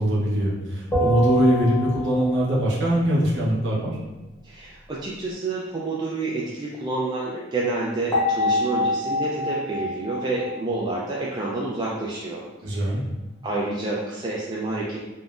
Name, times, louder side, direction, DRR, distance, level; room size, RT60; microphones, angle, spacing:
voice 1, 0.0-4.0 12.6-13.0, equal, 70° right, -5 dB, 0.8 m, -22 dB
sound 1, 0.9-2.4 8.1-11.5, left 1 dB, 15° left, 0.8 m, -26 dB
voice 2, 4.4-12.9 13.4-15.0, right 2 dB, 25° right, -5 dB, 0.3 m, -29 dB
3.5 x 2.1 x 2.4 m, 1.1 s
head